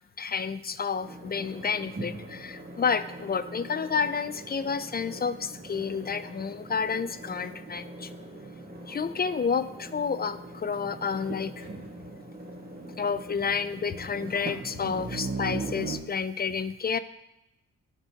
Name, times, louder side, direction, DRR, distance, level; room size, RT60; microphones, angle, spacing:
voice 1, 0.2-8.1 8.9-11.7 13.0-17.0, left 6 dB, 30° left, 13 dB, 0.5 m, -30 dB
sound 1, 1.0-16.0, right 2 dB, 25° right, 1.8 m, -40 dB
13.0 x 4.4 x 2.9 m, 0.89 s
supercardioid pair, 50°, 33 cm